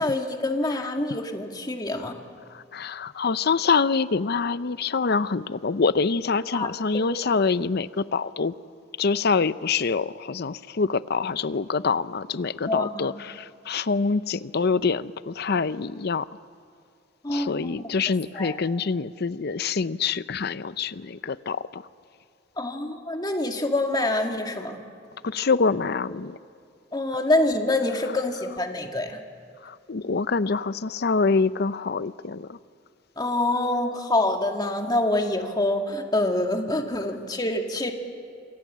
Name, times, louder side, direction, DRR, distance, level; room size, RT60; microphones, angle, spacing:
voice 1, 0.0-2.2 6.5-6.7 12.7-13.1 17.2-17.9 18.3-18.6 22.6-24.8 26.9-29.2 33.2-37.9, left 2 dB, 20° left, 3 dB, 2.0 m, -26 dB
voice 2, 2.5-8.5 9.0-16.3 17.3-21.8 25.2-26.4 29.6-32.6, left 4 dB, 55° left, 15 dB, 0.6 m, -25 dB
27.5 x 24.5 x 7.5 m, 2.3 s
head